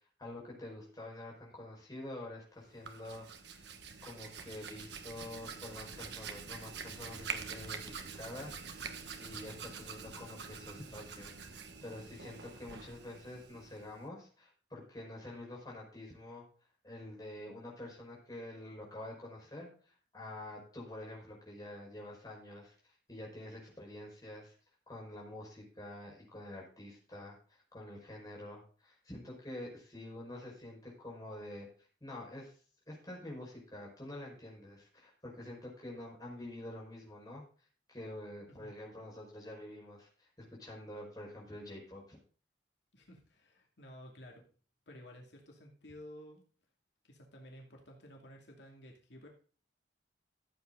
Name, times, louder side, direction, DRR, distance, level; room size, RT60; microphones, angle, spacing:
voice 1, 0.2-3.7 4.0-8.6 9.2-16.5 16.8-22.8 23.1-24.6 24.9-31.7 32.0-32.5 32.9-37.4 37.9-42.2, left 1 dB, 20° left, -2 dB, 5.3 m, -47 dB
Hands, 2.7-14.1, right 5 dB, 75° right, 1.4 m, -46 dB
voice 2, 42.9-44.4 44.9-46.4 47.0-49.3, equal, 75° left, 0 dB, 2.5 m, -53 dB
14.5 x 8.0 x 3.9 m, 0.41 s
head